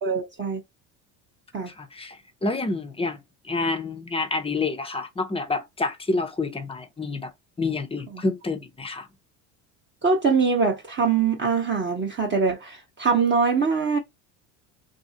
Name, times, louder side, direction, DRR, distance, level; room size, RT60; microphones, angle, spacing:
voice 1, 0.0-0.6 1.5-1.7 10.0-14.0, right 5 dB, 25° right, 0.7 m, -23 dB
voice 2, 1.7-2.2 2.4-3.2 3.4-7.3 7.6-9.1, left 3 dB, 10° left, 0.6 m, -28 dB
2.7 x 2.6 x 2.7 m
supercardioid pair, 95°, 46 cm